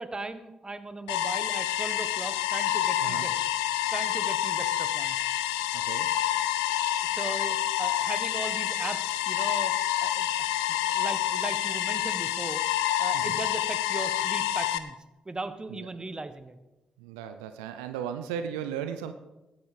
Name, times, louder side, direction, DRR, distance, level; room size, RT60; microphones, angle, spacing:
voice 1, 0.0-3.5 3.9-5.2 7.1-9.7 10.0-10.3 10.7-12.6 13.0-14.9 15.2-16.6, right 2 dB, 25° right, 11 dB, 1.4 m, -38 dB
sound 1, 1.1-14.8, left 12 dB, 85° left, 0.6 m, -28 dB
voice 2, 5.7-6.1 13.1-13.4 15.7-15.9 17.0-19.1, right 8 dB, 85° right, 9 dB, 0.6 m, -36 dB
14.0 x 11.0 x 5.1 m, 1.0 s
hypercardioid pair, 40°, 3 cm